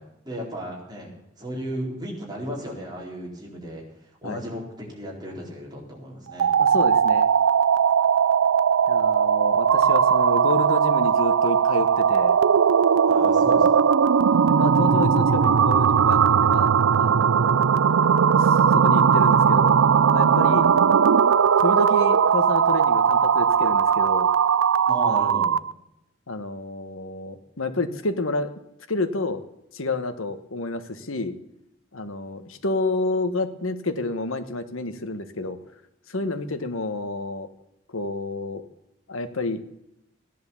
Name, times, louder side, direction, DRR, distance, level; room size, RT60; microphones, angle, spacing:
voice 1, 0.0-3.8 4.2-6.5 13.1-13.9 24.9-25.5 36.1-36.4, equal, 20° right, -2 dB, 4.1 m, -35 dB
sound 1, 6.3-25.7, right 7 dB, 85° right, 0.4 m, -19 dB
voice 2, 6.6-7.3 8.9-12.4 14.5-16.7 17.0-17.7 18.3-19.7 20.1-20.7 21.4-24.3 25.1-25.4 26.3-28.5 28.9-29.4 29.7-31.3 31.9-35.6 36.1-37.5 37.9-38.6 39.1-39.6, left 2 dB, 85° left, 9 dB, 1.4 m, -29 dB
15.5 x 10.5 x 7.2 m, 0.84 s
head